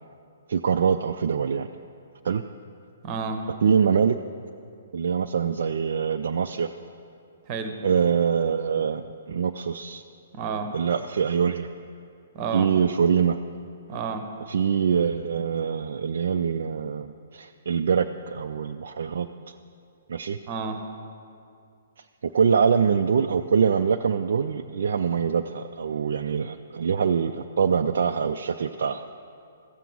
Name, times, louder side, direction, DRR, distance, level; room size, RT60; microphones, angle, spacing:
voice 1, 0.5-1.7 2.2-2.4 3.6-4.2 4.9-6.7 7.8-10.0 10.7-11.7 12.5-13.4 14.5-19.5 20.1-20.4 22.2-29.1, right 6 dB, 55° right, 6 dB, 0.3 m, -24 dB
voice 2, 3.0-3.4 7.5-7.8 10.3-10.7 12.3-12.7 13.9-14.3 20.5-20.8, right 5 dB, 30° right, 7 dB, 1.0 m, -30 dB
14.5 x 7.4 x 5.4 m, 2.4 s
figure-of-eight pair, 120°, 0 cm